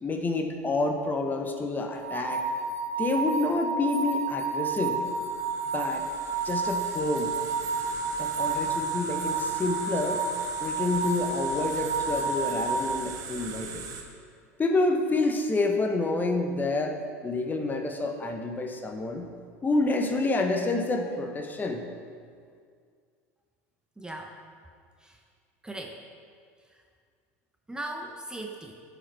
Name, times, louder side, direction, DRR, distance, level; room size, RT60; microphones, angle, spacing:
voice 1, 0.0-2.4 3.0-5.1 5.7-6.0 6.4-7.3 8.2-10.2 10.6-13.8 14.6-17.0 17.2-19.3 19.6-21.8, left 2 dB, 20° left, 4 dB, 0.9 m, -28 dB
sound 1, 2.0-12.8, right 4 dB, 85° right, 0.7 m, -30 dB
sound 2, 4.9-14.0, right 5 dB, 45° right, 1.1 m, -41 dB
voice 2, 24.0-24.4 25.0-25.2 25.6-26.0 26.7-26.8 27.7-28.7, right 1 dB, 10° right, 2 dB, 0.7 m, -38 dB
9.9 x 5.1 x 4.7 m, 2.1 s
hypercardioid pair, 85°, 8 cm